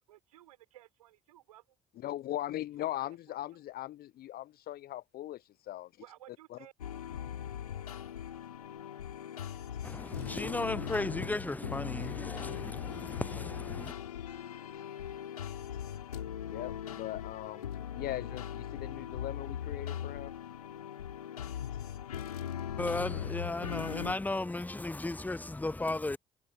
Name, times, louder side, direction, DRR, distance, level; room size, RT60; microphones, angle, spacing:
voice 1, 0.1-1.6 3.0-3.4 6.0-6.7, right 14 dB, 80° right, 5.6 m, -56 dB
voice 2, 2.0-5.9 6.5-6.6 16.5-17.6 18.0-20.3, left 14 dB, 55° left, 0.9 m, -39 dB
sound 1, 6.8-24.1, left 9 dB, 85° left, 5.1 m, -40 dB
voice 3, 9.8-13.9 22.8-26.2, left 2 dB, 10° left, 0.7 m, -35 dB
figure-of-eight pair, 45°, 19 cm